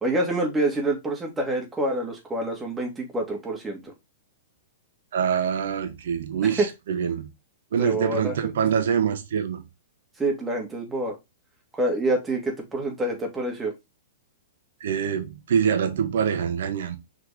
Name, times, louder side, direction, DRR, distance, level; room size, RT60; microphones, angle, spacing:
voice 1, 0.0-3.9 6.4-6.7 7.8-8.5 10.2-11.1 11.7-13.7, right 1 dB, 10° right, 2.4 m, -27 dB
voice 2, 5.1-7.3 7.7-9.6 14.8-17.0, right 7 dB, 65° right, 1.3 m, -25 dB
6.0 x 4.6 x 3.5 m
hypercardioid pair, 110°, 0 cm